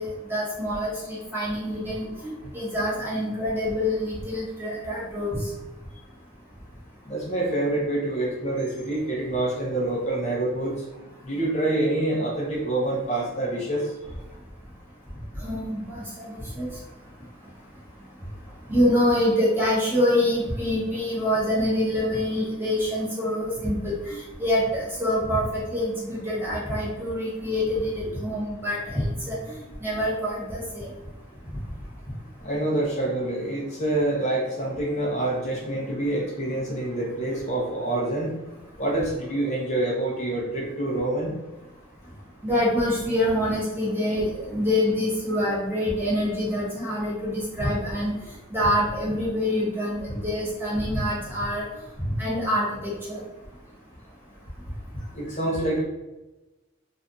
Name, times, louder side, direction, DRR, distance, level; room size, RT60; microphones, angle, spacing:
voice 1, 0.0-5.4 15.4-16.7 18.7-29.5 29.8-30.9 42.4-48.1 48.5-51.6 52.2-53.2, left 1 dB, 10° right, -7 dB, 1.0 m, -26 dB
voice 2, 7.1-10.7 11.2-13.9 32.4-38.3 38.8-41.3 55.1-55.8, right 1 dB, 35° left, -3 dB, 0.6 m, -26 dB
2.5 x 2.2 x 3.8 m, 1.1 s
head